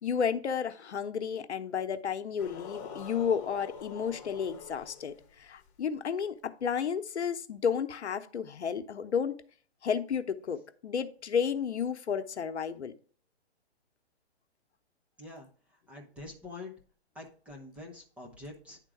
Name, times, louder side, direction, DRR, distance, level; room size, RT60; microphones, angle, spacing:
voice 1, 0.0-9.3 9.8-12.9, left 7 dB, 85° left, 0.9 m, -32 dB
sound 1, 2.4-5.7, left 7 dB, 25° left, 1.0 m, -45 dB
voice 2, 15.9-16.7 17.1-18.8, left 2 dB, 5° right, 0.5 m, -45 dB
10.0 x 3.7 x 4.8 m
hypercardioid pair, 145°, 33 cm